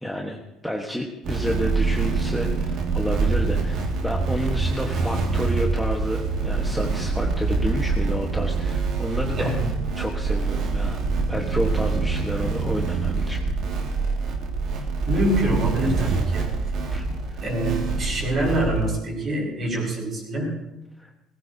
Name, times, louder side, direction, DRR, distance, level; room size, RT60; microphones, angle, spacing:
voice 1, 0.0-9.6 10.0-11.0 11.3-13.4 16.9-17.4 21.0-21.1, equal, ahead, -1 dB, 1.2 m, -30 dB
sound 1, 1.2-18.9, right 4 dB, 55° right, 2.0 m, -25 dB
voice 2, 15.1-16.5 17.4-20.5, right 1 dB, 30° right, -1 dB, 5.3 m, -25 dB
20.5 x 19.5 x 2.7 m, 0.90 s
cardioid pair, 160°, 0 cm